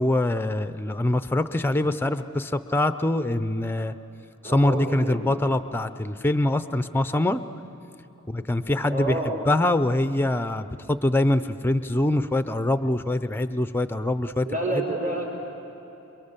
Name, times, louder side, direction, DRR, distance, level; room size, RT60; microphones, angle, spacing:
voice 1, 0.0-4.0 4.4-7.4 8.3-9.2 9.5-14.5 14.7-14.8, left 1 dB, 10° left, 11 dB, 0.5 m, -24 dB
voice 2, 4.4-5.2 8.9-9.4 14.4-15.2, right 2 dB, 40° right, -3 dB, 5.0 m, -28 dB
28.5 x 22.5 x 6.8 m, 2.9 s
head